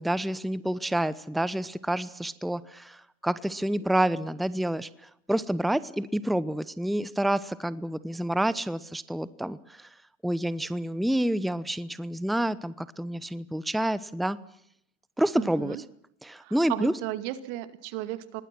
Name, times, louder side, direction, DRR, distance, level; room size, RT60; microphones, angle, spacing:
voice 1, 0.0-9.9 10.2-14.4 15.2-15.8 16.2-16.9, right 1 dB, ahead, 17 dB, 0.9 m, -28 dB
voice 2, 15.4-15.8 16.4-18.4, right 15 dB, 70° right, 13 dB, 2.3 m, -35 dB
26.0 x 19.5 x 6.1 m, 0.74 s
supercardioid pair, 95°, 35 cm